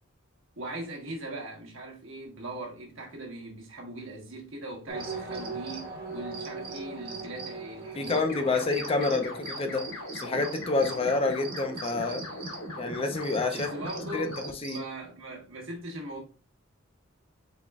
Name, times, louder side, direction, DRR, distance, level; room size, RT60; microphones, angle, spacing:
voice 1, 0.6-8.7 9.0-9.3 13.5-14.4 14.7-16.2, right 1 dB, 70° right, 1.3 m, -40 dB
sound 1, 4.9-12.7 13.0-14.9, right 4 dB, 45° right, 1.1 m, -41 dB
voice 2, 7.9-9.3 9.6-9.8 10.1-12.2 12.8-13.7 14.1-14.3 14.6-14.8, left 3 dB, 30° left, 0.5 m, -28 dB
sound 2, 8.2-14.5, left 1 dB, 75° left, 2.0 m, -39 dB
4.2 x 4.1 x 2.3 m
head